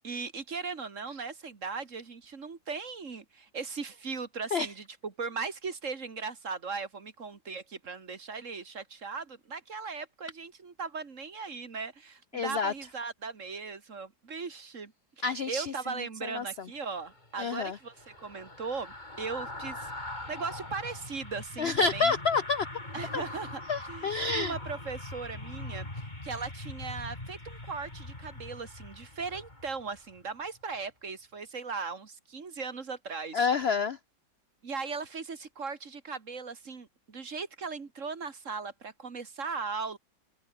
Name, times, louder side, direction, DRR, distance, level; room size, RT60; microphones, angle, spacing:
voice 1, 0.0-22.1 22.9-23.6 23.9-33.4 34.6-40.0, right 4 dB, 40° right, 2.1 m, -38 dB
voice 2, 12.3-12.7 15.2-15.7 16.2-16.4 17.4-17.8 21.6-22.7 23.1-23.2 23.7-24.5 33.3-34.0, left 4 dB, 65° left, 0.6 m, -28 dB
sound 1, 16.9-30.2 30.6-30.8, left 2 dB, 20° left, 4.0 m, -42 dB
omnidirectional pair, 2.1 m